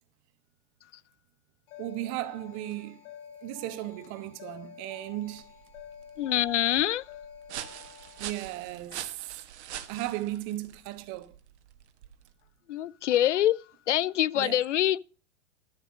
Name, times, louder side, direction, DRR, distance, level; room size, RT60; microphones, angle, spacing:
sound 1, 1.7-8.3, left 9 dB, 50° left, 2.6 m, -49 dB
voice 1, 1.8-3.0 3.4-5.4 8.2-9.1 9.9-11.3 14.3-14.6, right 15 dB, 50° right, 1.4 m, -35 dB
sound 2, 5.1-12.5, right 10 dB, 65° right, 1.4 m, -44 dB
voice 2, 6.2-7.0 12.7-13.6 13.9-15.0, left 12 dB, 80° left, 0.5 m, -25 dB
12.0 x 7.1 x 6.2 m
figure-of-eight pair, 90°, 36 cm